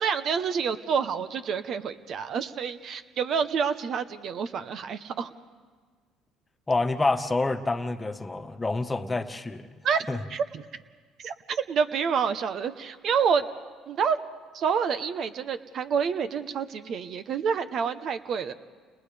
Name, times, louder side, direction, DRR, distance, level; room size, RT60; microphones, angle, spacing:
voice 1, 0.0-5.3 9.8-10.6 11.2-13.4 13.9-14.2 14.5-18.5, right 6 dB, 55° right, 10 dB, 1.0 m, -28 dB
voice 2, 6.7-9.6 10.1-10.2, left 3 dB, 20° left, 7 dB, 1.5 m, -27 dB
30.0 x 30.0 x 3.5 m, 1.5 s
supercardioid pair, 75°, 0 cm